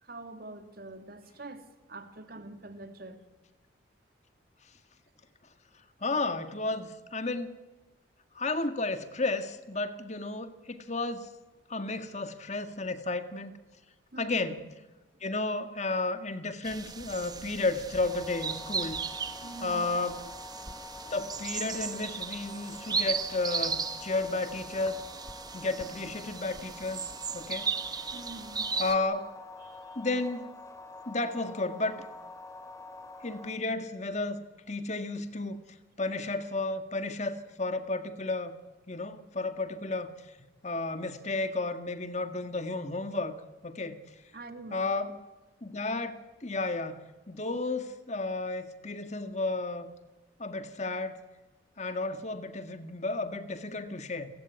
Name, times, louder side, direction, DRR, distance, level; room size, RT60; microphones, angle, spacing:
voice 1, 0.0-3.2 14.1-14.6 19.4-19.9 28.1-28.7 29.6-30.1 44.3-45.1, right 2 dB, 50° right, 8 dB, 2.5 m, -45 dB
voice 2, 6.0-7.6 8.3-11.3 11.7-13.6 14.2-14.6 15.2-19.0 19.6-20.3 21.0-25.0 25.5-27.7 28.8-29.3 30.0-30.6 31.1-32.1 33.2-34.4 34.7-35.6 36.0-38.5 38.9-40.4 40.6-43.4 43.6-44.0 44.7-45.2 45.6-49.9 50.4-51.2 51.8-54.3, left 2 dB, 35° left, 10 dB, 1.8 m, -32 dB
sound 1, 16.6-29.0, right 5 dB, 20° right, 1.3 m, -36 dB
sound 2, 18.0-33.5, left 2 dB, 15° left, 2.9 m, -47 dB
29.5 x 17.0 x 9.6 m, 1.2 s
head